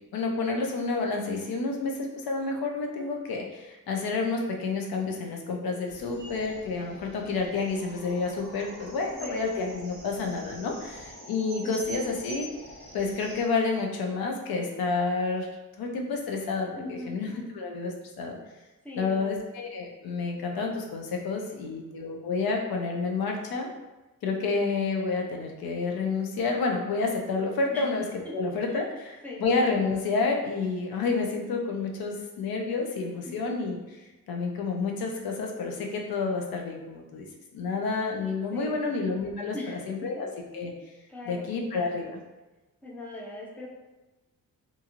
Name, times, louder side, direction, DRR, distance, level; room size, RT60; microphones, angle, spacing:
voice 1, 0.1-12.5 12.9-15.5 15.8-18.4 19.0-23.7 24.2-37.3 37.5-40.3 40.5-40.7 41.2-42.1, left 4 dB, 80° left, 2 dB, 0.5 m, -29 dB
voice 2, 2.8-3.2 9.2-9.5 11.6-12.1 16.7-17.2 18.8-19.4 27.7-27.8 28.2-28.3 28.7-28.8 29.2-29.4 33.3-33.4 38.5-38.9 39.5-39.8 41.1-41.5 42.8-43.7, left 2 dB, 5° left, -4 dB, 0.4 m, -40 dB
sound 1, 5.9-13.4, right 1 dB, 30° left, 0.9 m, -45 dB
2.8 x 2.6 x 2.4 m, 1.1 s
wide cardioid pair, 150°, 36 cm